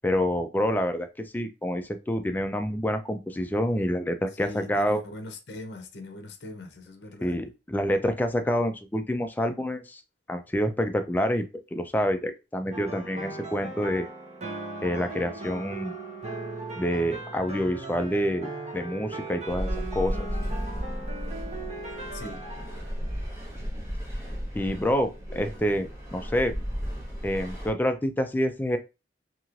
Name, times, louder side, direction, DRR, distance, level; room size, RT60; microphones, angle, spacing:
voice 1, 0.0-1.1 1.3-5.0 7.2-10.0 10.3-11.4 11.7-14.1 14.8-15.9 16.8-20.2 24.5-26.5 27.2-28.8, equal, 10° left, 0.3 m, -27 dB
voice 2, 4.4-7.4 22.1-22.4, left 2 dB, 70° left, 0.6 m, -41 dB
sound 1, 12.7-23.7, right 2 dB, 40° right, 1.0 m, -38 dB
sound 2, 19.5-27.7, equal, 15° right, 1.0 m, -34 dB
3.0 x 2.8 x 2.4 m
head